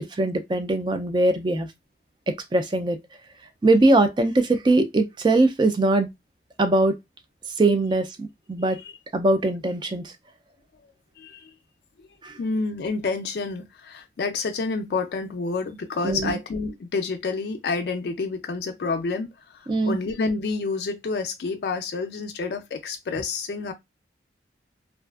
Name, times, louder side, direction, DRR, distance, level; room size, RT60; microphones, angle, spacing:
voice 1, 0.1-1.7 2.3-3.0 3.6-6.1 6.6-7.0 7.6-8.8 9.1-10.1 12.2-12.3 16.0-16.4 19.7-20.0, right 2 dB, 25° right, 0.3 m, -21 dB
voice 2, 8.6-8.9 11.2-11.5 12.4-23.7, left 4 dB, 60° left, 0.4 m, -29 dB
2.5 x 2.3 x 2.3 m
head